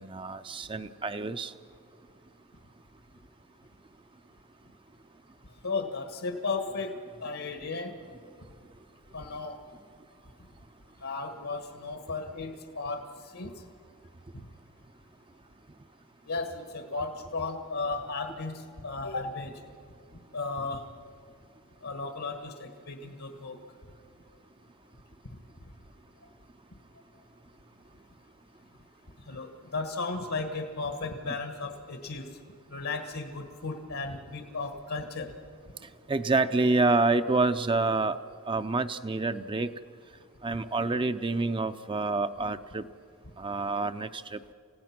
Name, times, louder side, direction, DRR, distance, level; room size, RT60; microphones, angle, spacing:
voice 1, 0.0-1.5 36.1-38.2 38.5-39.7 40.4-42.9 43.4-44.4, right 3 dB, 20° right, 10 dB, 0.5 m, -27 dB
voice 2, 5.6-6.9 7.2-8.0 9.1-9.6 11.0-13.7 16.2-19.6 20.3-20.9 21.8-23.6 29.2-32.3 32.7-35.3, left 3 dB, 75° left, 6 dB, 1.5 m, -35 dB
28.0 x 16.5 x 5.9 m, 2.2 s
head